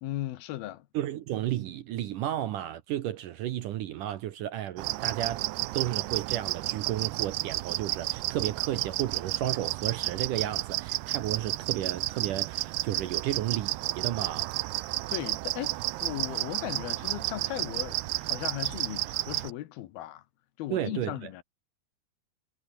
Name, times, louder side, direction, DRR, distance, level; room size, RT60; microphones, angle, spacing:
voice 1, 0.0-0.9 15.1-20.2 20.6-21.4, left 14 dB, 75° left, 2.8 m, -37 dB
voice 2, 0.9-5.4 5.7-14.5 20.7-21.1, right 12 dB, 70° right, 2.2 m, -33 dB
sound 1, 4.8-19.5, right 19 dB, 90° right, 2.8 m, -32 dB
omnidirectional pair, 4.6 m